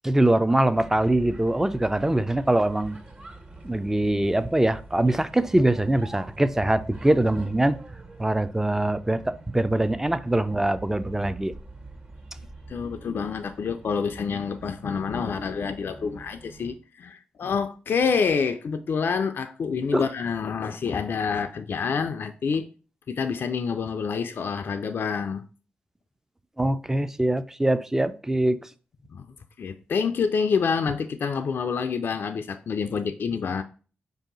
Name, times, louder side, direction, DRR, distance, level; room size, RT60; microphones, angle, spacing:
voice 1, 0.0-3.0 3.6-7.8 8.2-11.5 19.9-20.1 26.6-28.7, right 1 dB, 10° right, 0.4 m, -23 dB
sound 1, 0.7-16.7, right 2 dB, 40° right, 1.5 m, -45 dB
voice 2, 12.7-22.7 23.1-25.4 29.1-29.2 29.6-33.6, left 5 dB, 60° left, 0.3 m, -27 dB
4.7 x 2.7 x 3.8 m
supercardioid pair, 45°, 4 cm